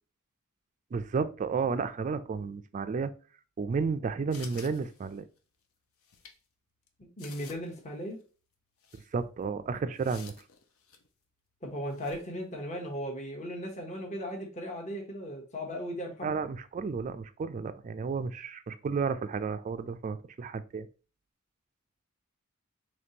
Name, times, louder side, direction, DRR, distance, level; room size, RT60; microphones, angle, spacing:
voice 1, 0.9-3.1 3.6-5.2 9.1-10.3 16.2-20.9, right 5 dB, 35° right, 0.3 m, -32 dB
sound 1, 4.3-5.4 6.0-6.4 6.9-7.0 7.2-7.8 8.1-8.2 8.8-9.1 10.0-11.1 11.9-12.2, left 6 dB, 80° left, 0.7 m, -51 dB
voice 2, 7.0-8.2 11.6-16.4, equal, 35° left, 0.9 m, -37 dB
5.1 x 3.2 x 2.8 m
head